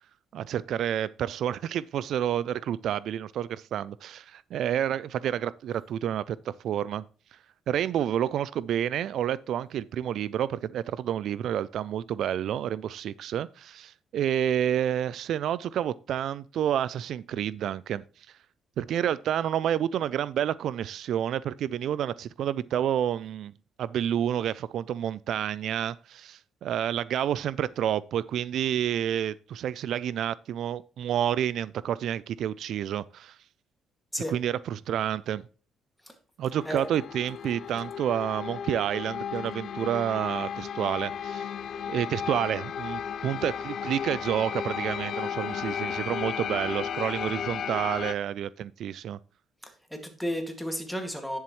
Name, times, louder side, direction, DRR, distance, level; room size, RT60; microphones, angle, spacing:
voice 1, 0.3-7.0 7.7-18.0 18.8-23.5 23.8-33.4 34.3-35.4 36.4-41.5 41.9-49.2, right 10 dB, 70° right, 0.3 m, -29 dB
sound 1, 36.5-48.1, left 8 dB, 60° left, 0.5 m, -34 dB
voice 2, 49.6-51.4, equal, ahead, 2.1 m, -33 dB
10.5 x 7.1 x 3.1 m
cardioid pair, 110°, 0 cm